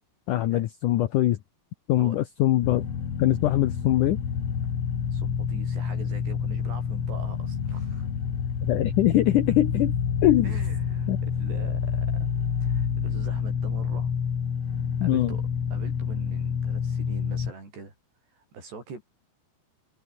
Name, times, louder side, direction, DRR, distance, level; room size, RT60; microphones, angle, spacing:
voice 1, 0.3-1.4 1.9-2.8 3.2-4.2 8.6-9.9 10.2-10.5 11.1-11.2 15.0-15.4, left 14 dB, 75° left, 1.9 m, -22 dB
sound 1, 2.6-17.5, left 7 dB, 45° left, 2.9 m, -28 dB
voice 2, 5.1-8.1 10.4-12.3 12.6-14.1 15.0-15.4 15.7-17.9 18.3-19.0, right 4 dB, 75° right, 10.0 m, -43 dB
omnidirectional pair, 4.9 m